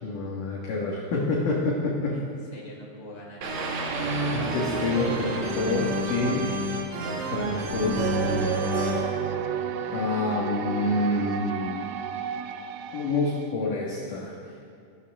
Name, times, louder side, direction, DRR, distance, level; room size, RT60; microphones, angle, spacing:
voice 1, 0.0-2.3 4.3-6.5 7.1-9.1 9.9-11.9 12.9-14.4, left 2 dB, 55° left, -3 dB, 2.5 m, -28 dB
voice 2, 2.1-3.8 10.3-12.1, left 1 dB, 25° left, -2 dB, 3.3 m, -47 dB
sound 1, 3.4-10.4, right 1 dB, 65° right, 1.8 m, -30 dB
sound 2, 8.0-13.5, right 9 dB, 85° right, 3.1 m, -32 dB
25.5 x 14.0 x 3.6 m, 2.5 s
omnidirectional pair, 5.8 m